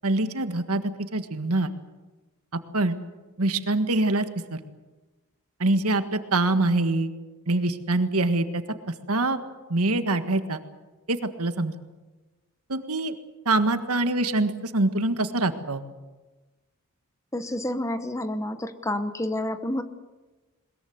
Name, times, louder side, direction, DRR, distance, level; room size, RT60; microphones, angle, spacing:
voice 1, 0.0-1.7 2.7-3.0 3.4-4.2 4.5-4.6 5.6-7.1 7.5-8.6 9.1-9.4 9.7-10.6 11.1-11.8 12.7-13.1 13.4-15.8, right 2 dB, 80° right, 9 dB, 1.6 m, -24 dB
voice 2, 17.3-19.8, left 1 dB, 15° left, 10 dB, 1.1 m, -29 dB
21.5 x 21.5 x 8.0 m, 1.2 s
head